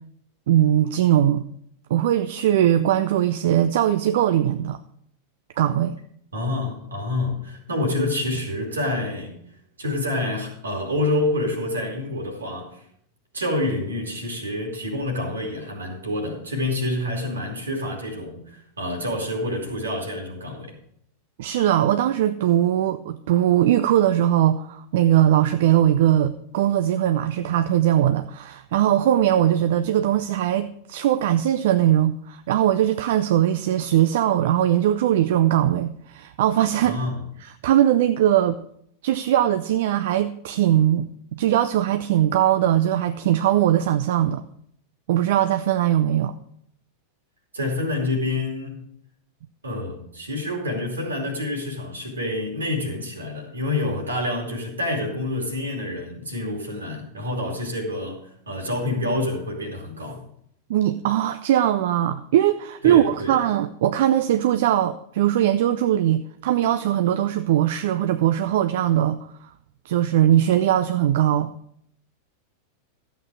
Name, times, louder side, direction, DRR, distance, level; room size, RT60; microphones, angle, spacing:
voice 1, 0.5-1.4 1.9-4.8 5.6-6.0 21.4-37.0 37.4-38.6 39.0-44.4 45.1-46.3 60.7-69.2 69.9-71.5, right 11 dB, 55° right, 0.4 m, -20 dB
voice 2, 6.3-9.3 9.8-12.8 13.3-20.7 36.8-37.2 47.5-48.8 49.6-60.3 62.8-63.4, left 2 dB, 75° right, 2.5 m, -27 dB
12.5 x 8.1 x 4.7 m
figure-of-eight pair, 90°, 0 cm